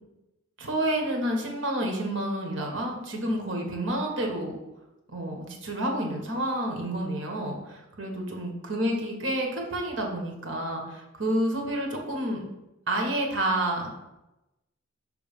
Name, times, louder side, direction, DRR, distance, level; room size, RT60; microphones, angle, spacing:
voice 1, 0.6-4.5 5.1-12.4 12.9-14.0, right 1 dB, 70° right, 1 dB, 1.4 m, -29 dB
6.4 x 3.5 x 5.2 m, 0.95 s
head